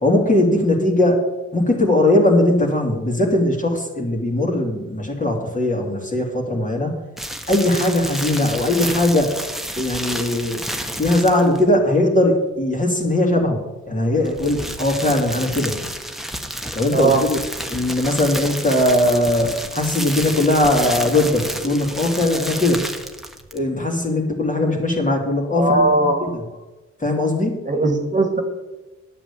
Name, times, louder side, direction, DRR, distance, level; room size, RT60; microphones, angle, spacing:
voice 1, 0.0-1.2 1.5-6.9 7.5-9.4 9.8-10.6 11.0-15.8 16.7-17.4 17.7-22.9 23.5-26.4 27.0-27.6, left 1 dB, 25° left, 0 dB, 3.0 m, -19 dB
sound 1, 7.2-11.7 14.1-23.7, equal, ahead, 1.3 m, -30 dB
voice 2, 16.9-17.2 25.6-26.3 27.7-28.4, right 2 dB, 25° right, 4 dB, 2.1 m, -18 dB
9.8 x 7.2 x 8.6 m, 1.1 s
cardioid pair, 75°, 30 cm